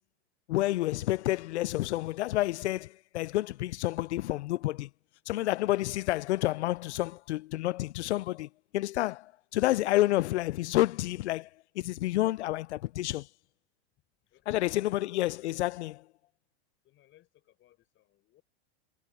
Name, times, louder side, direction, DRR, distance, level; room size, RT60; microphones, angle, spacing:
voice 1, 0.5-4.9 5.3-11.5 11.8-13.3 14.5-16.0, left 16 dB, 85° left, 0.6 m, -29 dB
voice 2, 14.2-15.5 16.8-18.4, left 14 dB, 35° left, 5.9 m, -64 dB
supercardioid pair, 130°, 33 cm